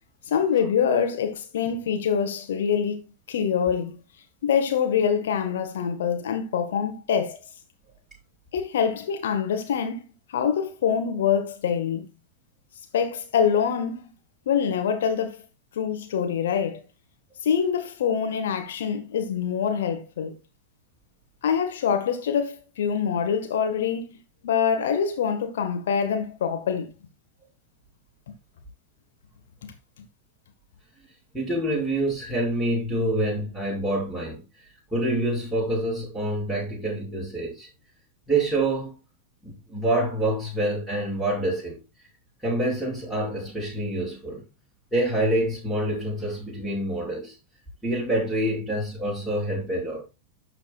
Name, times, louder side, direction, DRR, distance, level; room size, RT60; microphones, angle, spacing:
voice 1, 0.3-3.0 3.3-3.9 4.4-7.4 8.5-10.0 10.3-12.0 12.9-14.0 14.4-15.4 15.7-16.8 17.4-20.3 21.4-24.2 24.4-26.9 28.3-28.4 29.6-29.7, left 7 dB, 60° left, 1.5 m, -25 dB
voice 2, 31.3-34.4 34.9-37.7 38.3-38.9 39.4-41.8 42.4-44.4 44.9-47.4 47.8-50.0, right 1 dB, ahead, 5.7 m, -26 dB
12.0 x 6.9 x 2.4 m
figure-of-eight pair, 90°, 0 cm